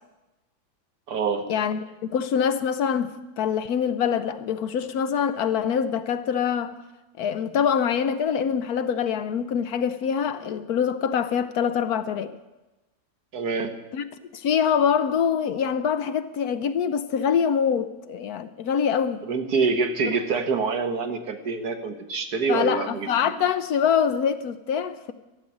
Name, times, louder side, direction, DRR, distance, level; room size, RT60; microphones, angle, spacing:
voice 1, 1.1-1.5 13.3-13.8 19.2-23.3, right 4 dB, 65° right, 1.7 m, -26 dB
voice 2, 2.1-6.7 7.2-12.4 13.9-14.0 14.3-19.2 22.5-25.1, left 7 dB, 70° left, 1.1 m, -24 dB
13.5 x 7.4 x 10.0 m
omnidirectional pair, 1.8 m